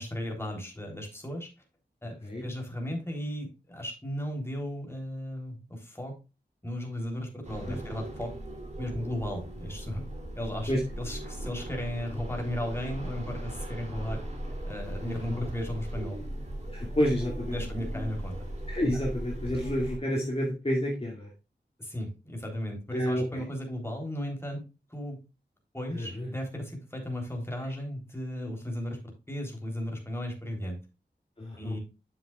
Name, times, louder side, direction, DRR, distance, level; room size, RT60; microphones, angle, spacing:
voice 1, 0.0-1.5 2.0-6.1 6.6-8.3 8.8-10.0 10.4-14.2 14.6-16.2 17.5-18.4 18.9-19.0 21.8-24.6 24.9-25.2 25.7-30.8 31.6-31.8, equal, 15° left, 1 dB, 3.5 m, -35 dB
sound 1, 7.4-20.0, right 1 dB, 40° right, 2.9 m, -38 dB
voice 2, 15.0-15.4 16.7-17.6 18.7-21.3 22.9-23.4 25.9-26.3 31.4-31.8, equal, 35° left, -2 dB, 2.4 m, -29 dB
9.8 x 7.2 x 2.4 m, 0.28 s
wide cardioid pair, 65°, 18 cm